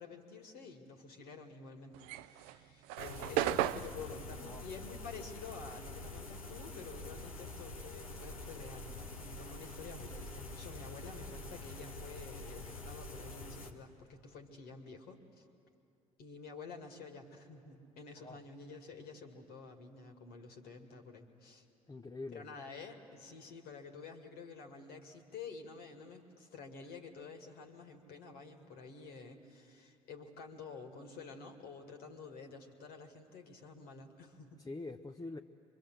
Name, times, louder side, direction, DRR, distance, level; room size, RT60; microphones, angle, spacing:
voice 1, 0.0-15.5 16.2-21.6 22.3-34.6, left 4 dB, 60° left, 3 dB, 2.3 m, -50 dB
sound 1, 1.9-6.7 6.9-8.9, right 13 dB, 70° right, 0.5 m, -37 dB
sound 2, 3.0-13.7, left 2 dB, 90° left, 1.1 m, -46 dB
voice 2, 4.3-4.6 18.2-18.4 21.9-22.6 34.6-35.4, left 3 dB, 20° left, 4 dB, 0.9 m, -45 dB
24.5 x 24.0 x 7.7 m, 2.6 s
figure-of-eight pair, 50°, 18 cm